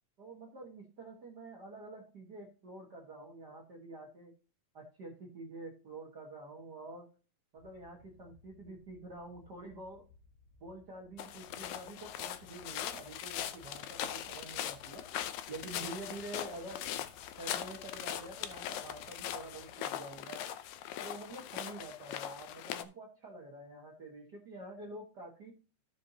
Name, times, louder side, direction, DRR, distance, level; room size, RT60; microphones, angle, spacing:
voice 1, 0.2-4.3 4.7-7.1 7.5-10.1 10.6-15.1 15.5-17.0 17.3-20.4 21.0-25.5, right 2 dB, 60° right, 0 dB, 1.0 m, -47 dB
sound 1, 7.6-19.7, left 4 dB, 70° left, 3.9 m, -62 dB
sound 2, 11.2-22.8, left 11 dB, 85° left, 1.6 m, -41 dB
14.5 x 5.6 x 2.7 m, 0.36 s
omnidirectional pair, 4.1 m